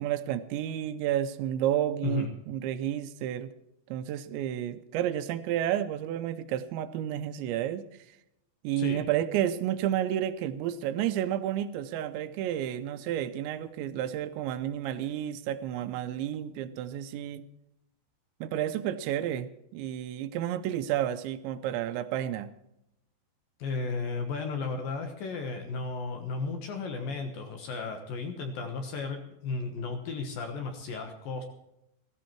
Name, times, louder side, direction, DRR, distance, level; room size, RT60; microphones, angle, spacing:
voice 1, 0.0-3.5 3.9-7.8 8.6-17.4 18.4-22.5, right 11 dB, 80° right, 11 dB, 2.9 m, -31 dB
voice 2, 23.6-31.4, left 4 dB, 65° left, 5 dB, 2.5 m, -34 dB
15.5 x 15.0 x 4.5 m, 0.83 s
omnidirectional pair, 5.3 m